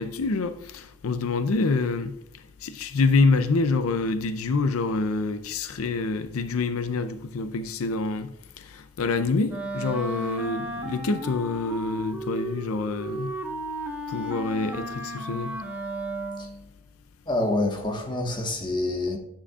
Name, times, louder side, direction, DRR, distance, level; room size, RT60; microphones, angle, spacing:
voice 1, 0.0-2.1 2.6-8.3 8.6-13.3 14.1-15.5, left 3 dB, 75° left, 0.5 m, -26 dB
Wind instrument woodwind instrument, 9.5-16.6, right 1 dB, 10° right, 1.1 m, -34 dB
voice 2, 17.3-19.2, left 2 dB, 20° left, 1.3 m, -26 dB
9.7 x 8.6 x 2.4 m
head